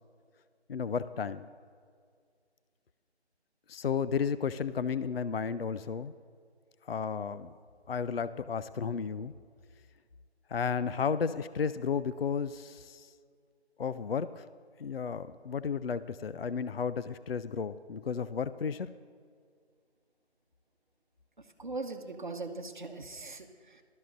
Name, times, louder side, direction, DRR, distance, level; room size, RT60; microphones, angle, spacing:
voice 1, 0.7-1.5 3.7-6.1 6.8-7.5 7.9-9.3 10.5-13.1 13.8-14.5 14.8-18.9, left 6 dB, 60° left, 14 dB, 0.4 m, -33 dB
voice 2, 21.4-23.8, right 3 dB, 45° right, 6 dB, 1.0 m, -40 dB
18.0 x 13.0 x 2.6 m, 2.1 s
figure-of-eight pair, 170°, 33 cm